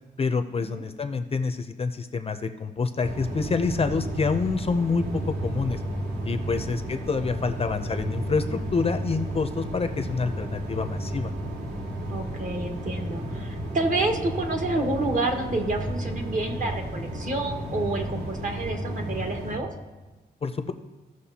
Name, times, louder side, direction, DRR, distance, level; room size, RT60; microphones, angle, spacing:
voice 1, 0.2-5.8 6.2-11.3 20.4-20.7, left 4 dB, 35° left, 8 dB, 0.5 m, -27 dB
sound 1, 3.0-19.6, right 1 dB, 70° right, 2.3 m, -32 dB
voice 2, 12.1-19.7, right 2 dB, 45° right, 3 dB, 1.4 m, -29 dB
16.5 x 6.3 x 2.8 m, 1.2 s
wide cardioid pair, 150°, 18 cm